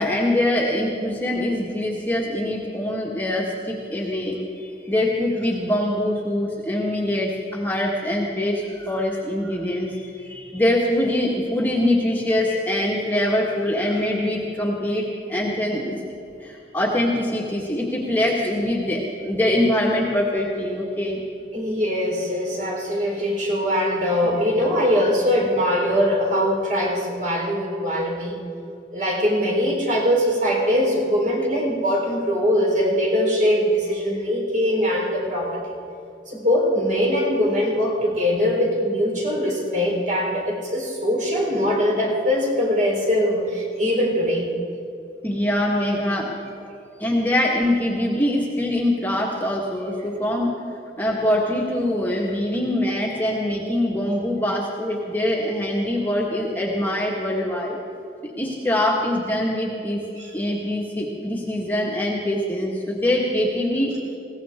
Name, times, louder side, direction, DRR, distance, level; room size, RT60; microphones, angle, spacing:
voice 1, 0.0-15.9 16.4-21.2 45.2-46.3 47.0-50.5 51.0-57.8 58.2-60.1 60.3-64.1, left 1 dB, 10° left, -3 dB, 1.6 m, -23 dB
voice 2, 21.5-28.4 28.9-35.7 36.3-44.5 47.0-47.1 60.2-60.3, equal, 45° right, -2 dB, 4.0 m, -22 dB
21.0 x 17.0 x 3.6 m, 2.5 s
head